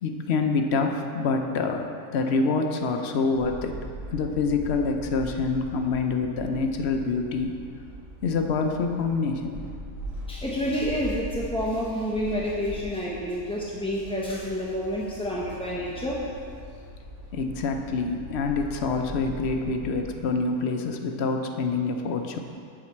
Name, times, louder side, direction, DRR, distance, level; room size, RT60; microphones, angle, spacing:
voice 1, 0.0-3.8 4.1-7.5 8.2-9.6 17.3-22.4, left 4 dB, 55° left, 4 dB, 0.8 m, -26 dB
sound 1, 3.3-20.1, equal, 60° right, 1.9 m, -41 dB
voice 2, 10.3-16.2, equal, 5° left, -5 dB, 0.4 m, -29 dB
7.4 x 5.0 x 7.2 m, 2.3 s
omnidirectional pair, 1.6 m